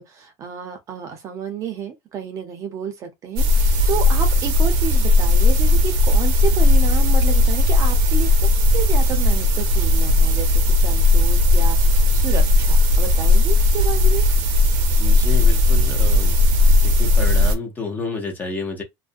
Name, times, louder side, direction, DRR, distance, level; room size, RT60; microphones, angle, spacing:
voice 1, 0.0-14.3, right 6 dB, 30° right, 0.6 m, -31 dB
sound 1, 3.4-17.6, left 2 dB, 80° right, 0.7 m, -16 dB
voice 2, 15.0-16.4 16.7-18.8, left 3 dB, 20° left, 0.6 m, -30 dB
2.4 x 2.1 x 2.5 m
cardioid pair, 155°, 10 cm